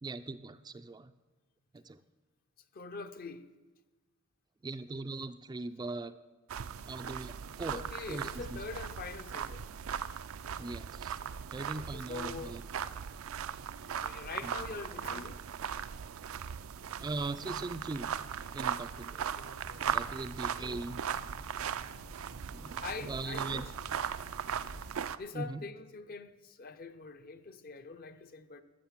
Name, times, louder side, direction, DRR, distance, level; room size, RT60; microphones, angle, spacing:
voice 1, 0.0-1.1 1.7-2.0 4.6-6.1 6.9-8.6 10.6-11.1 11.5-12.6 14.4-14.5 17.0-18.1 18.5-19.5 19.8-21.0 22.5-23.7 25.3-25.6, right 3 dB, 20° right, 0.3 m, -40 dB
voice 2, 2.7-3.5 7.7-9.6 11.7-12.6 13.9-15.4 19.4-19.8 20.6-21.2 22.8-23.7 25.2-28.6, left 4 dB, 45° left, 0.6 m, -44 dB
sound 1, 6.5-25.2, right 8 dB, 85° right, 0.4 m, -38 dB
Bird, 19.6-24.9, equal, 65° left, 1.9 m, -52 dB
13.0 x 6.4 x 7.3 m
head